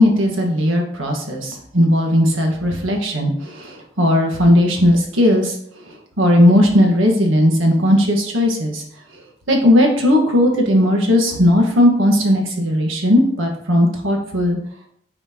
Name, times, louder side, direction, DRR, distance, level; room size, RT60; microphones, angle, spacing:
voice 1, 0.0-5.5 6.2-8.8 9.5-14.6, left 1 dB, 90° right, 1 dB, 1.6 m, -16 dB
8.8 x 4.3 x 3.0 m, 0.67 s
head